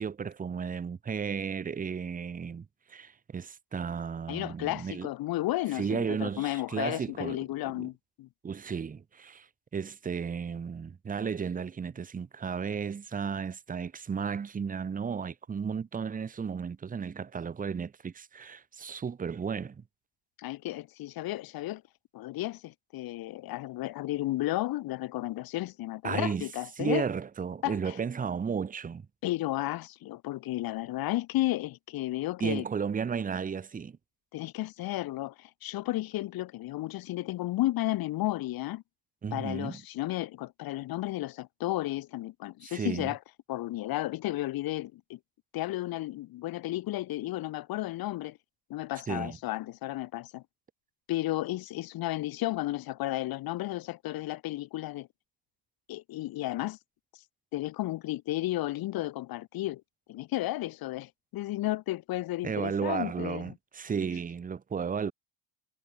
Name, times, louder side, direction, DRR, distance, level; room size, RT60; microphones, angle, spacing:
voice 1, 0.0-5.1 5.8-7.4 7.8-7.9 8.4-9.5 9.7-19.8 26.0-26.5 26.8-29.0 32.4-34.0 39.2-39.8 42.6-43.1 49.1-49.4 62.4-65.1, right 6 dB, 20° right, 0.9 m, -34 dB
voice 2, 4.3-8.3 20.4-21.8 22.1-27.1 27.6-27.9 29.2-32.6 34.3-38.8 39.3-43.2 43.5-45.2 45.5-48.4 48.7-50.4 51.1-55.1 55.9-56.8 57.5-59.8 60.1-63.5, left 16 dB, 65° left, 2.2 m, -33 dB
cardioid pair, 110°, 39 cm